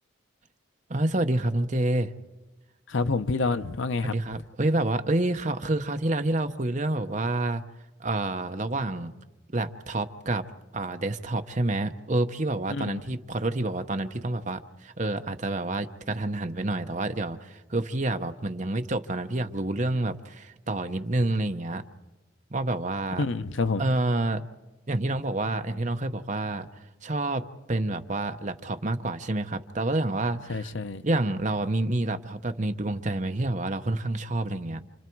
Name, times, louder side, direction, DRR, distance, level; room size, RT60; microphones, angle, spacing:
voice 1, 0.9-2.1 4.0-7.6 8.0-9.1 9.5-10.5 10.7-21.8 22.5-23.2 23.8-24.4 24.9-26.7 27.0-30.7 31.0-34.8, right 2 dB, 35° right, 0.9 m, -28 dB
voice 2, 2.9-4.4 12.7-13.0 23.2-23.8 30.5-31.0, left 3 dB, 70° left, 0.8 m, -28 dB
29.0 x 27.5 x 4.7 m
head